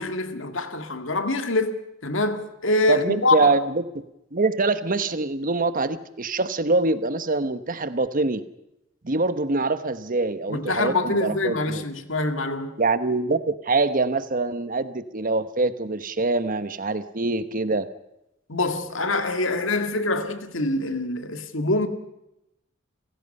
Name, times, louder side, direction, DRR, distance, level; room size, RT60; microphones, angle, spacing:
voice 1, 0.0-1.7 2.0-3.6 10.5-12.8 18.5-21.9, left 2 dB, 75° left, 2.0 m, -25 dB
voice 2, 2.9-3.8 4.3-8.4 9.0-11.8 12.8-17.9, right 3 dB, 45° right, 1.1 m, -24 dB
30.0 x 16.5 x 5.5 m
head